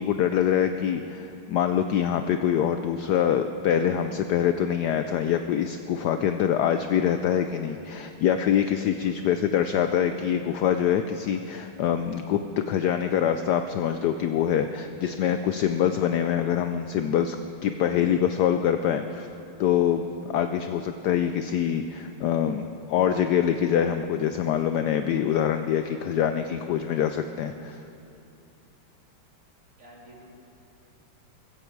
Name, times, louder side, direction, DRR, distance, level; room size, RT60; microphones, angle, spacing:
voice 1, 0.0-12.4 12.7-17.4 17.6-19.3 19.6-27.8, left 9 dB, 85° left, 8 dB, 0.9 m, -25 dB
voice 2, 8.8-9.5 29.8-30.3, right 1 dB, 35° right, -4 dB, 3.2 m, -49 dB
15.5 x 15.0 x 4.7 m, 2.8 s
omnidirectional pair, 2.3 m